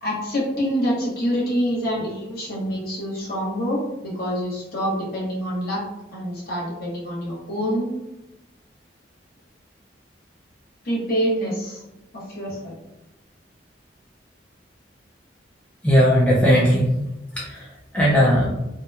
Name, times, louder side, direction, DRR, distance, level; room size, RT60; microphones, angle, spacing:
voice 1, 0.0-5.8 6.1-7.9 10.8-11.8 12.1-12.8, equal, 50° left, -5 dB, 0.9 m, -26 dB
voice 2, 15.8-17.0 17.3-18.5, equal, 5° left, -6 dB, 0.4 m, -18 dB
2.7 x 2.1 x 2.3 m, 0.95 s
head